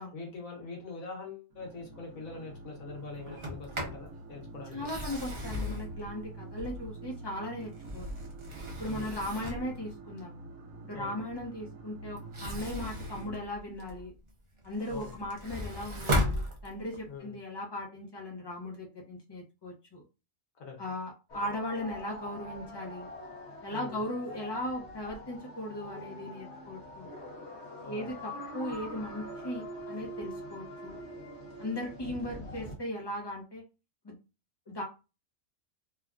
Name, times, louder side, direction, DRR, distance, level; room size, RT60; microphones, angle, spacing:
voice 1, 0.1-4.9 8.9-9.2 10.9-11.2 14.9-15.1 17.1-17.3 20.6-20.8 23.7-24.0 27.8-28.1, left 4 dB, 80° left, 1.4 m, -43 dB
sound 1, 1.5-13.4, right 2 dB, 80° right, 1.1 m, -46 dB
Sliding door, 3.3-4.1 4.7-7.1 7.6-9.8 12.2-14.1 14.6-17.1, left 1 dB, 40° right, 0.4 m, -36 dB
voice 2, 4.7-8.1 8.8-10.5 10.8-14.1 14.6-20.0 20.8-23.1 23.6-27.1 27.9-31.0 31.6-33.6 34.0-34.2 34.7-34.8, left 1 dB, 25° left, 0.6 m, -38 dB
sound 2, 21.3-32.8, left 1 dB, 60° left, 1.0 m, -44 dB
3.2 x 2.3 x 2.4 m
omnidirectional pair, 1.4 m